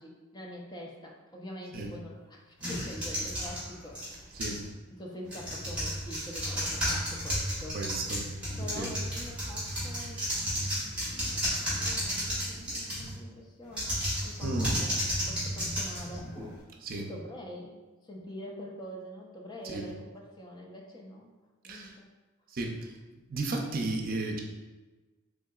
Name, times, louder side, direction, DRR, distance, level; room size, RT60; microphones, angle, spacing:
voice 1, 0.0-4.4 5.0-7.8 8.6-14.0 14.2-16.3 17.0-17.8 18.0-21.3 21.6-22.1, left 1 dB, 20° left, 0 dB, 0.5 m, -45 dB
sound 1, 2.6-4.7 5.2-13.2 13.7-16.6, equal, 5° right, 1.5 m, -33 dB
voice 2, 7.7-8.3 8.7-8.9 14.4-14.8 16.8-17.1 19.6-19.9 21.7-21.9 22.5-22.9 23.3-24.4, right 2 dB, 50° right, 1 dB, 0.5 m, -33 dB
3.7 x 3.6 x 2.3 m, 1.2 s
head